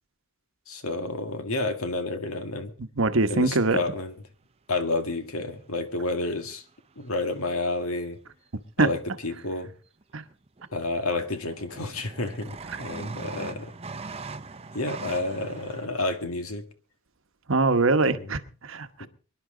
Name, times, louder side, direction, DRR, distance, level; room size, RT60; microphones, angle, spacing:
voice 1, 0.7-2.7 3.3-4.1 4.7-6.6 7.0-8.2 8.8-9.7 10.7-13.7 14.7-16.6 18.1-18.3 19.0-19.1, left 2 dB, 70° left, 1.8 m, -30 dB
voice 2, 2.8-3.8 8.8-8.9 10.1-10.2 17.5-19.1, right 3 dB, 60° right, 1.0 m, -23 dB
sound 1, 5.4-5.5 7.0-7.7 10.0-10.1 10.3-10.8 11.1-15.9, right 4 dB, 25° right, 0.6 m, -40 dB
24.0 x 11.0 x 3.8 m
head